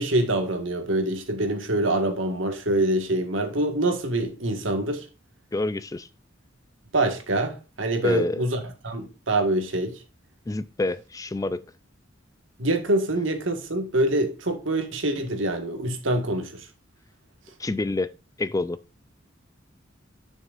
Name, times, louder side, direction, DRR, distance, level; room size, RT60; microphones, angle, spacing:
voice 1, 0.0-5.1 6.9-8.6 8.8-10.0 12.6-16.6, right 1 dB, 70° right, 1.7 m, -25 dB
voice 2, 5.5-6.1 8.0-8.5 10.5-11.6 17.6-18.1 18.4-18.8, left 2 dB, 15° left, 0.3 m, -27 dB
11.0 x 6.3 x 2.5 m
head